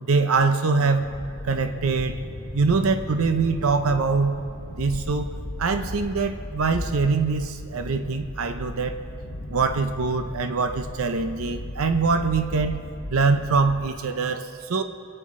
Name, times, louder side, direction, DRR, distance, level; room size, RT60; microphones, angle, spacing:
voice 1, 0.0-1.1 1.4-2.2 2.5-4.4 4.7-5.3 5.6-9.0 9.5-12.8 13.1-14.8, right 4 dB, 75° right, 8 dB, 0.6 m, -23 dB
sound 1, 0.9-13.9, left 1 dB, 60° left, 1.1 m, -36 dB
27.0 x 9.1 x 3.7 m, 2.5 s
head